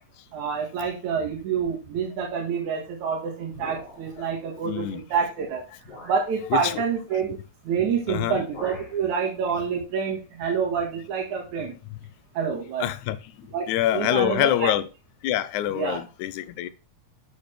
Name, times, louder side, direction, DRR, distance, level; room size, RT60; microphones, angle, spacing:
voice 1, 0.3-5.6 6.0-7.4 7.6-11.8 12.3-12.9 13.5-14.7 15.7-16.0, right 6 dB, 80° right, 3.0 m, -27 dB
sound 1, 3.5-4.3 5.2-5.3 5.8-6.3 7.7-7.9 8.2-9.0, left 1 dB, 50° left, 5.1 m, -43 dB
voice 2, 4.7-5.0 6.5-6.8 8.1-8.5 11.9-12.0 12.8-13.2 13.7-14.9 15.2-16.7, left 12 dB, 85° left, 2.0 m, -25 dB
8.0 x 6.6 x 3.3 m
omnidirectional pair, 3.3 m